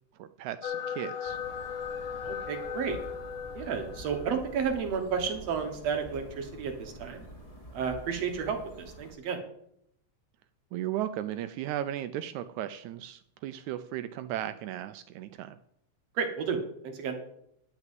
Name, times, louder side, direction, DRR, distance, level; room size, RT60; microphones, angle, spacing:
voice 1, 0.2-1.4 10.7-15.6, right 12 dB, 80° right, 11 dB, 1.8 m, -36 dB
sound 1, 0.6-4.6, left 7 dB, 80° left, 2.8 m, -37 dB
sound 2, 1.2-9.1, equal, 15° left, 2.0 m, -48 dB
voice 2, 2.2-3.0 3.5-7.2 7.7-9.4 16.2-17.2, right 6 dB, 60° right, 5 dB, 2.2 m, -32 dB
11.0 x 6.0 x 7.5 m, 0.73 s
omnidirectional pair, 3.6 m